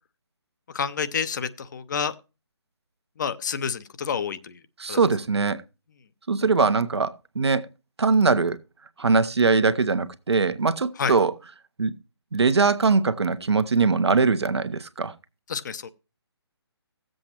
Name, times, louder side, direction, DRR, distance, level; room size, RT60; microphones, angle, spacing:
voice 1, 0.7-2.1 3.2-4.6 4.9-5.0 11.0-11.2 15.5-15.9, left 6 dB, 45° left, 0.8 m, -29 dB
voice 2, 4.8-5.6 6.3-7.7 8.0-8.6 9.0-11.3 11.8-11.9 12.3-15.1, right 4 dB, 75° right, 1.1 m, -21 dB
16.5 x 7.7 x 2.9 m
figure-of-eight pair, 150°, 14 cm